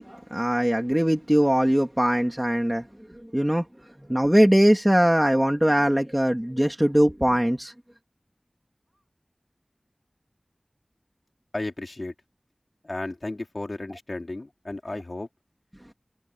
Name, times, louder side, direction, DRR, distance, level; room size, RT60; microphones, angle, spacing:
voice 1, 0.0-2.9 3.3-3.6 4.1-7.7, equal, 10° right, 2.7 m, -21 dB
voice 2, 11.5-12.1 12.8-15.3, left 2 dB, 60° left, 4.2 m, -33 dB
wide cardioid pair, 55°, 0 cm